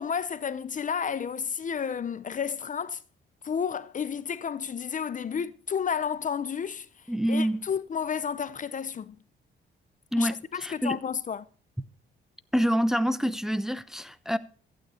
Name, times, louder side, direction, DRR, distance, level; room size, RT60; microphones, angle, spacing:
voice 1, 0.0-3.0 3.4-6.9 7.3-9.2 10.2-11.5, left 7 dB, 40° left, 0.7 m, -31 dB
voice 2, 7.1-7.6 10.1-11.0 12.5-14.4, equal, ahead, 0.8 m, -27 dB
15.0 x 9.2 x 4.3 m
cardioid pair, 90°, 20 cm